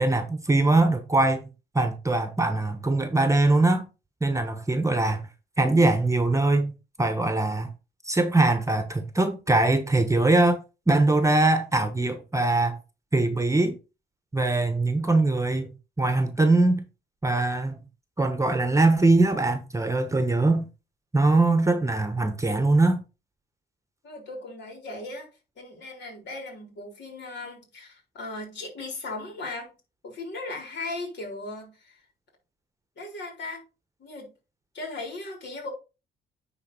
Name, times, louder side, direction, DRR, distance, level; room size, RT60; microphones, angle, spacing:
voice 1, 0.0-1.5 1.7-3.9 4.2-5.2 5.6-6.7 7.0-7.7 8.0-10.6 10.9-12.8 13.1-13.8 14.3-16.9 17.2-17.9 18.2-20.7 21.1-23.0, right 2 dB, 15° right, 1.1 m, -22 dB
voice 2, 24.0-25.3 25.6-29.7 30.0-32.0 33.0-33.6 34.0-34.3 34.7-35.7, left 2 dB, 60° left, 4.0 m, -37 dB
9.8 x 4.2 x 4.0 m
cardioid pair, 90°, 20 cm